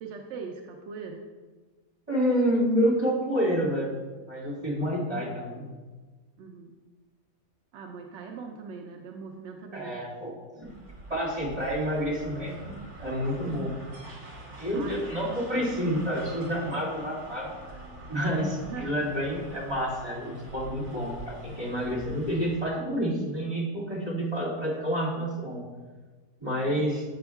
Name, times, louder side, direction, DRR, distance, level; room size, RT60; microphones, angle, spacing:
voice 1, 0.0-1.3 6.4-6.8 7.7-10.1 14.7-15.0 16.6-16.8 18.6-18.9 26.7-26.8, right 5 dB, 75° right, 2 dB, 0.6 m, -41 dB
voice 2, 2.1-4.0 4.3-5.6 9.7-10.7 11.1-13.7 14.6-17.5 18.1-25.6 26.4-27.0, equal, 20° right, -7 dB, 2.1 m, -29 dB
sound 1, 10.6-22.7, right 2 dB, 45° right, 1.6 m, -45 dB
7.8 x 6.0 x 2.3 m, 1.3 s
omnidirectional pair, 1.8 m